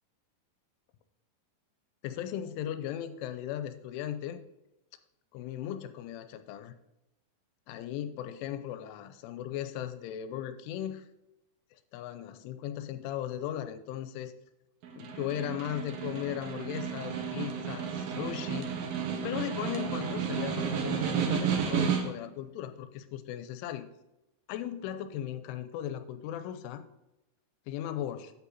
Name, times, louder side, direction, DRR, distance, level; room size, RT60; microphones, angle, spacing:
voice 1, 2.0-4.4 5.3-6.7 7.7-11.1 11.9-14.3 15.0-18.8 19.2-23.9 24.5-26.8 27.7-28.3, left 11 dB, 85° left, 11 dB, 3.2 m, -37 dB
Snare drum, 14.8-22.3, right 7 dB, 70° right, 2.4 m, -32 dB
8.3 x 8.3 x 4.1 m, 0.91 s
omnidirectional pair, 5.5 m